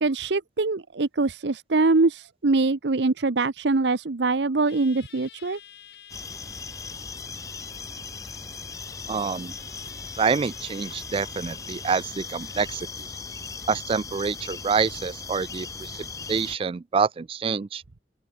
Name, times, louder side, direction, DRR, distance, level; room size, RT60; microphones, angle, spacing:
voice 1, 0.0-5.6, right 3 dB, 70° right, 0.8 m, -23 dB
sound 1, 4.7-16.7, left 12 dB, 60° left, 3.4 m, -49 dB
sound 2, 6.1-16.6, left 4 dB, 20° left, 0.8 m, -38 dB
voice 2, 9.1-9.6 10.2-12.9 13.7-17.8, right 5 dB, 30° right, 0.3 m, -27 dB
open air
head